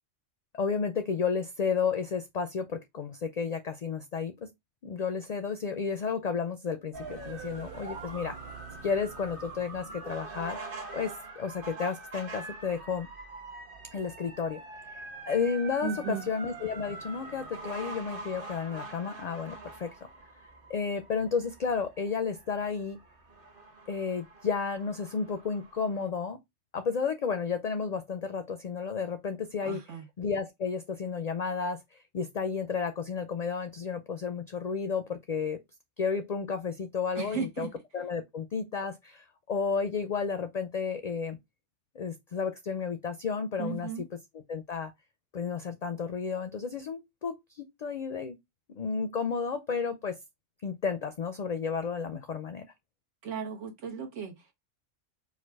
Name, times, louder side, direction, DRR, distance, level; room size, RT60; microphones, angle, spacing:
voice 1, 0.5-4.5 4.8-8.4 8.8-10.6 10.9-13.1 13.9-14.6 14.9-19.9 20.7-23.0 23.9-26.4 26.7-29.8 30.2-31.8 32.1-35.6 36.0-37.7 37.9-41.4 42.0-43.9 44.5-44.9 45.3-48.4 48.8-50.2 50.6-52.7, left 5 dB, 50° left, 0.5 m, -32 dB
sound 1, 6.9-26.1, right 3 dB, 45° right, 1.3 m, -44 dB
voice 2, 15.8-16.3 29.6-30.1 37.1-37.8 43.6-44.1 53.2-54.5, right 6 dB, 80° right, 1.4 m, -36 dB
4.8 x 2.2 x 4.5 m
omnidirectional pair, 1.3 m